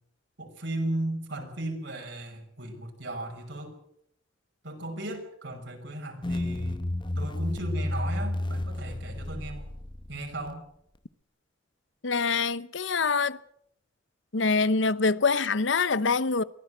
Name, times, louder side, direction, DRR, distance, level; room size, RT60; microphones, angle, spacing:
voice 1, 0.4-3.7 4.6-6.8 7.1-9.7 10.1-10.6, right 1 dB, 65° right, 6.0 m, -36 dB
sound 1, 6.2-10.5, left 1 dB, 25° left, 0.9 m, -31 dB
voice 2, 12.0-13.4 14.3-16.4, left 4 dB, 70° left, 0.9 m, -25 dB
23.5 x 16.0 x 8.0 m
head